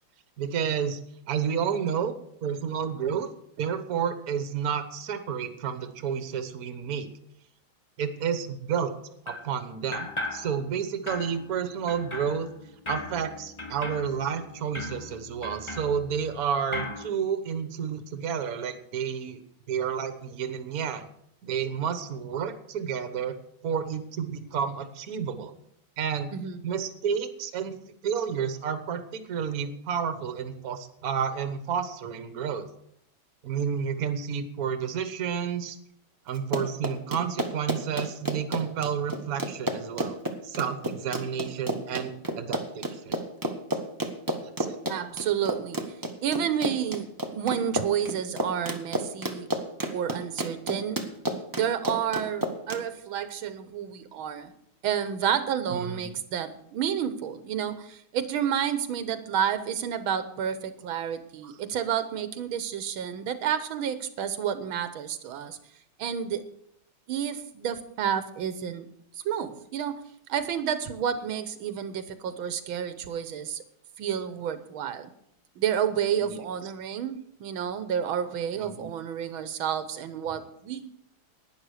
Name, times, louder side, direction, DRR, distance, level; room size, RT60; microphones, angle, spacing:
voice 1, 0.4-1.0 1.3-2.1 2.4-3.3 3.6-7.1 8.0-8.9 9.3-12.5 12.9-19.4 19.7-21.0 21.4-23.4 23.6-25.5 26.0-26.3 26.6-27.8 28.0-32.7 33.4-35.8 36.3-40.1 40.5-43.1 44.4-44.8 55.7-56.1 61.4-61.5 76.2-76.4 78.6-78.9, right 7 dB, 50° right, 10 dB, 1.4 m, -30 dB
sound 1, 9.3-9.6 9.9-10.8 11.1-16.4 16.7-17.1, left 2 dB, 25° left, 0.6 m, -38 dB
Run, 36.3-52.8, right 1 dB, 15° right, 0.7 m, -31 dB
voice 2, 44.9-45.9 46.2-49.5 49.9-51.0 51.5-54.5 54.8-65.6 66.0-66.5 67.1-68.9 69.2-73.6 74.0-75.1 75.6-80.9, right 8 dB, 80° right, 11 dB, 1.7 m, -30 dB
11.5 x 9.8 x 6.4 m, 0.72 s
omnidirectional pair, 2.2 m